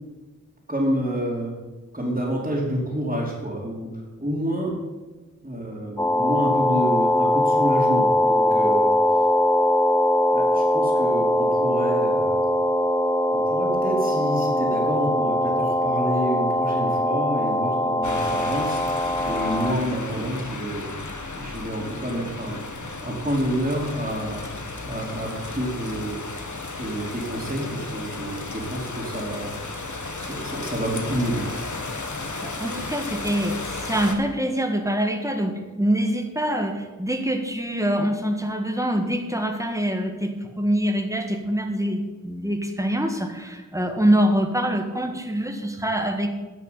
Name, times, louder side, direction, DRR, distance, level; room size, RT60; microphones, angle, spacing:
voice 1, 0.7-1.5 1.9-3.9 4.2-4.8 5.4-8.9 10.3-12.5 13.3-21.0 21.3-22.6 23.0-24.4 24.8-26.2 26.7-29.5 30.2-31.5, equal, 25° right, -7 dB, 3.1 m, -28 dB
sound 1, 6.0-19.7, left 1 dB, 10° left, 0.5 m, -21 dB
sound 2, 18.0-34.1, left 3 dB, 70° left, 1.4 m, -34 dB
voice 2, 32.4-46.3, equal, 10° right, 5 dB, 1.7 m, -25 dB
10.5 x 6.4 x 8.6 m, 1.3 s
wide cardioid pair, 40°, 31 cm